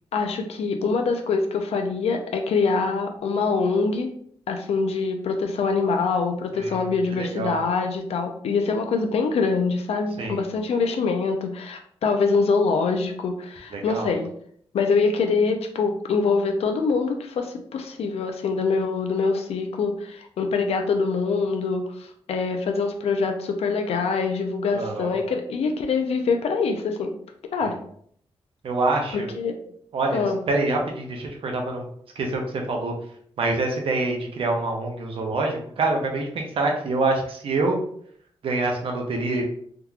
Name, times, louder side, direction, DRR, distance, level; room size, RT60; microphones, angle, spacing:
voice 1, 0.1-4.1 4.5-14.3 14.7-27.1 27.5-27.7 29.1-29.6 30.1-30.4, left 4 dB, 85° left, 5 dB, 0.5 m, -24 dB
voice 2, 6.5-7.6 10.2-10.4 13.7-14.1 24.7-25.1 27.6-27.8 28.6-29.3 29.9-31.8 32.2-32.9 33.4-37.8 38.4-39.5, right 2 dB, 65° right, 2 dB, 0.7 m, -26 dB
3.7 x 2.9 x 2.4 m, 0.63 s
wide cardioid pair, 160°, 10 cm